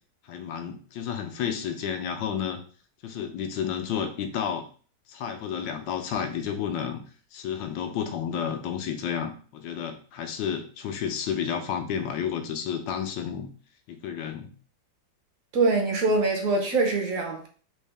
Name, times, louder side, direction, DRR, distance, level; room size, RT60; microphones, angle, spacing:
voice 1, 0.3-2.6 3.0-4.6 5.1-7.0 7.3-13.5 13.9-14.5, left 8 dB, 85° left, 1.3 m, -31 dB
voice 2, 15.5-17.5, right 3 dB, 60° right, 0.9 m, -24 dB
4.0 x 2.7 x 3.4 m
omnidirectional pair, 2.0 m